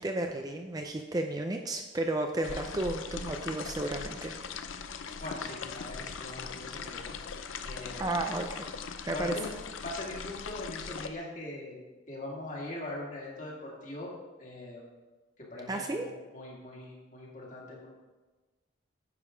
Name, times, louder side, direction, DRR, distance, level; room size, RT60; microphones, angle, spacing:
voice 1, 0.0-4.4 8.0-8.7 9.1-9.4 15.7-16.1, right 2 dB, 20° right, 4 dB, 0.4 m, -33 dB
sound 1, 2.4-11.1, left 5 dB, 80° left, 0.6 m, -40 dB
voice 2, 5.2-7.1 7.6-8.1 9.1-9.5 9.8-14.1 14.4-14.8 15.4-17.9, left 1 dB, 40° left, -3 dB, 2.0 m, -41 dB
9.7 x 5.1 x 5.0 m, 1.2 s
head